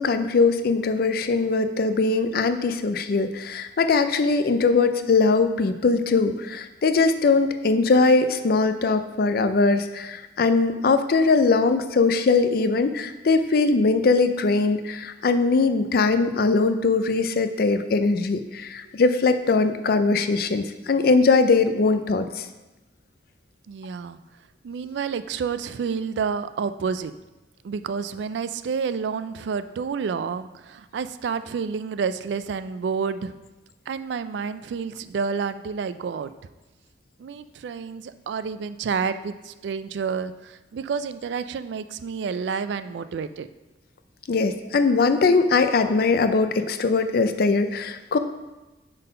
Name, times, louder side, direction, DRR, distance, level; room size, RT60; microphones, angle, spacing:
voice 1, 0.0-22.3 44.3-48.2, left 4 dB, 55° left, 9 dB, 0.4 m, -21 dB
voice 2, 23.7-24.2 24.6-27.1 27.6-33.3 33.9-36.3 37.2-43.5, right 6 dB, 75° right, 12 dB, 0.3 m, -29 dB
5.5 x 4.1 x 5.4 m, 1.1 s
head